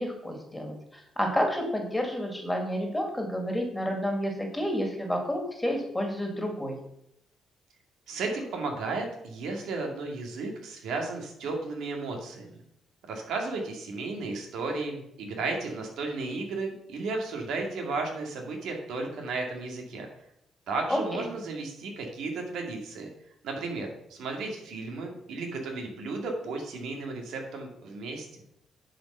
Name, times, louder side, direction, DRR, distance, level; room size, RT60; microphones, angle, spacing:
voice 1, 0.0-6.8 20.9-21.3, equal, 10° left, 2 dB, 2.2 m, -30 dB
voice 2, 8.1-12.6 13.1-20.1 20.7-23.1 23.4-28.3, right 3 dB, 80° right, 2 dB, 2.2 m, -34 dB
10.0 x 5.2 x 5.5 m, 0.77 s
cardioid pair, 90°, 0 cm